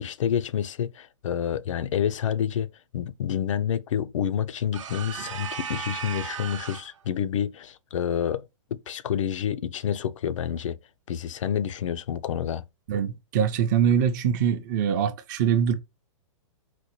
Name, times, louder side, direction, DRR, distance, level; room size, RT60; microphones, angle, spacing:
voice 1, 0.0-2.7 2.9-8.4 8.9-10.8 11.1-12.6, left 9 dB, 80° left, 0.4 m, -28 dB
sound 1, 4.7-7.0, right 7 dB, 80° right, 0.7 m, -35 dB
voice 2, 12.9-15.7, right 8 dB, 35° right, 0.5 m, -23 dB
4.1 x 2.2 x 3.0 m
hypercardioid pair, 155°, 16 cm